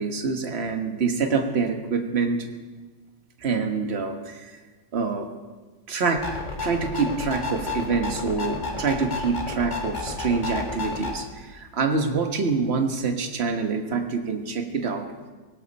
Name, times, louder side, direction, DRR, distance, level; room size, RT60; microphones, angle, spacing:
voice 1, 0.0-2.4 3.4-4.6 4.9-5.3 5.9-6.4 6.6-15.0, right 4 dB, 35° right, 5 dB, 1.4 m, -26 dB
sound 1, 6.2-11.1, left 3 dB, 25° left, 2.0 m, -31 dB
18.0 x 16.5 x 4.2 m, 1.3 s
omnidirectional pair, 2.1 m